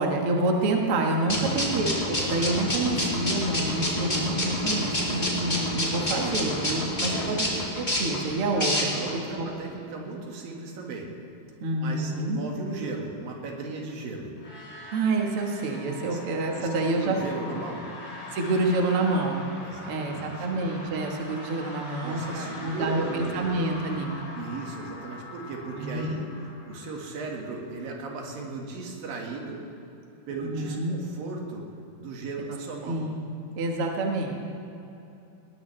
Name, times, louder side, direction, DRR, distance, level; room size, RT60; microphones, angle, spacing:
voice 1, 0.0-7.5 7.7-8.9 9.4-9.5 11.6-12.4 14.9-17.2 18.3-19.4 19.9-24.2 25.8-26.1 30.4-31.0 32.9-33.2 33.6-34.3, right 2 dB, 50° right, 1 dB, 2.0 m, -27 dB
sound 1, 1.3-9.2, left 1 dB, 15° left, 2.2 m, -28 dB
voice 2, 1.3-1.6 6.7-7.4 8.9-11.1 11.8-14.3 16.1-16.2 16.6-17.9 19.6-20.5 22.0-23.4 24.3-29.6 30.3-31.7 32.0-33.1, right 3 dB, 80° right, 0 dB, 3.5 m, -36 dB
sound 2, 14.3-28.1, left 2 dB, 90° left, 5.2 m, -43 dB
20.0 x 19.0 x 3.3 m, 2.9 s
omnidirectional pair, 4.0 m